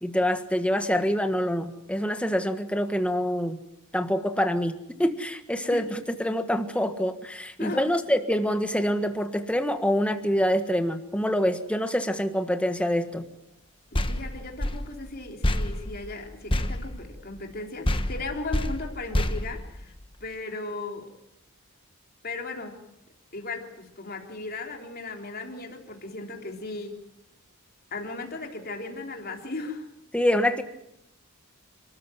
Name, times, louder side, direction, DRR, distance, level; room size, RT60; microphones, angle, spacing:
voice 1, 0.0-3.6 3.9-13.2 30.1-30.6, equal, 5° left, 7 dB, 1.5 m, -26 dB
voice 2, 7.6-7.9 13.9-20.0 20.2-21.1 22.2-22.9 23.3-27.0 27.9-29.9, left 3 dB, 45° left, 2 dB, 3.6 m, -36 dB
sound 1, 13.9-17.6 17.8-20.3, left 1 dB, 25° left, 1.2 m, -29 dB
29.5 x 14.0 x 9.3 m, 0.84 s
head